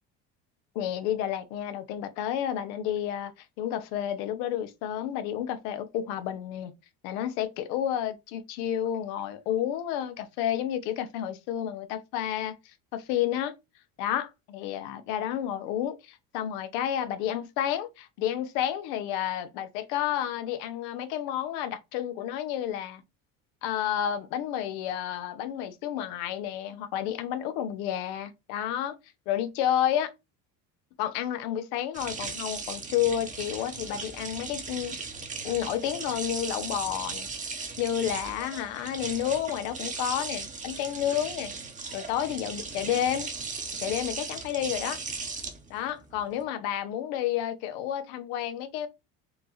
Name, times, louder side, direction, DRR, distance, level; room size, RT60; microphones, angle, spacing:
voice 1, 0.7-3.3 3.6-6.7 7.0-12.6 12.9-13.5 14.0-23.0 23.6-28.9 29.3-30.1 31.0-35.0 35.4-37.3 37.5-41.5 41.9-43.3 43.8-45.0 45.7-48.9, left 10 dB, 90° left, 0.8 m, -30 dB
sound 1, 31.9-46.4, right 4 dB, 20° right, 0.8 m, -37 dB
4.4 x 2.5 x 3.0 m
cardioid pair, 125°, 34 cm